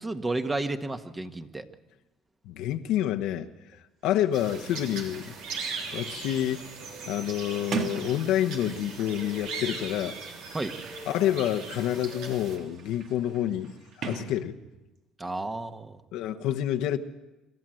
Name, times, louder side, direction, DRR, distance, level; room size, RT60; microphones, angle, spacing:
voice 1, 0.0-1.7 10.5-10.7 15.2-16.0, right 2 dB, 15° right, 1.5 m, -32 dB
voice 2, 2.4-5.4 5.9-6.7 7.1-10.2 11.1-13.7 14.0-14.6 16.1-17.0, left 11 dB, 75° left, 1.1 m, -28 dB
Sliding door, 3.7-9.1 10.0-15.0, right 6 dB, 60° right, 2.0 m, -41 dB
sound 1, 4.3-12.6, right 4 dB, 80° right, 3.5 m, -39 dB
26.5 x 13.5 x 7.8 m
supercardioid pair, 95°, 0 cm